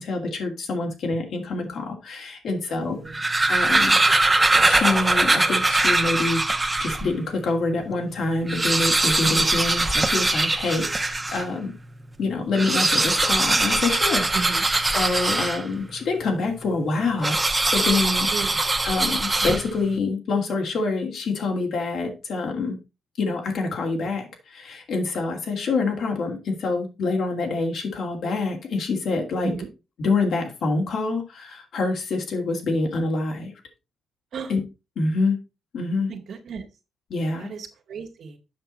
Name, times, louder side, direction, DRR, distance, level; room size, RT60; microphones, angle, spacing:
voice 1, 0.0-3.0 3.5-4.0 4.6-6.4 6.8-11.7 12.2-14.3 14.9-17.4 17.7-18.3 18.8-22.8 23.2-29.5 30.0-33.5 34.5-34.6 35.0-35.3 35.7-36.1 37.1-37.5, left 3 dB, 70° left, 2.5 m, -26 dB
voice 2, 2.7-3.2 14.3-14.7 18.3-18.5 29.4-29.7 34.3-34.5 36.1-36.6 37.4-38.4, right 5 dB, 65° right, 1.9 m, -34 dB
sound 1, 2.9-7.1 7.7-7.8 8.0-8.1 8.4-11.5 12.4-15.9 17.2-19.9, right 2 dB, 20° right, 1.0 m, -22 dB
7.8 x 5.9 x 4.2 m
cardioid pair, 85°, 0 cm